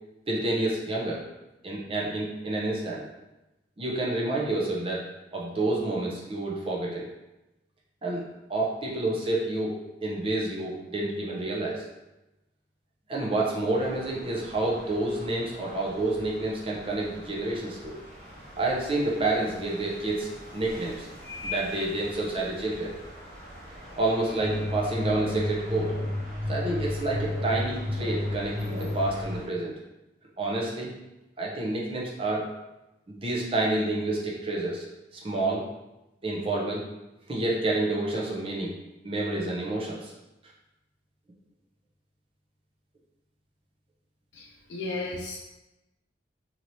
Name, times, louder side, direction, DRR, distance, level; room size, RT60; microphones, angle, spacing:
voice 1, 0.3-1.2 1.6-3.0 3.8-5.1 5.3-7.1 8.0-8.2 8.5-11.8 13.1-17.9 18.6-21.1 21.4-22.9 24.0-26.0 26.5-29.7 30.4-30.9 31.4-32.5 33.1-34.9 35.1-35.6 36.2-36.9 37.3-38.7 39.0-40.1, right 2 dB, 30° right, -3 dB, 0.6 m, -29 dB
sound 1, 13.7-29.4, left 1 dB, 50° right, 1.3 m, -44 dB
sound 2, 24.4-29.4, left 1 dB, 80° right, 1.2 m, -31 dB
voice 2, 44.3-45.4, left 2 dB, 85° left, -1 dB, 0.4 m, -34 dB
3.1 x 2.8 x 2.7 m, 0.97 s
head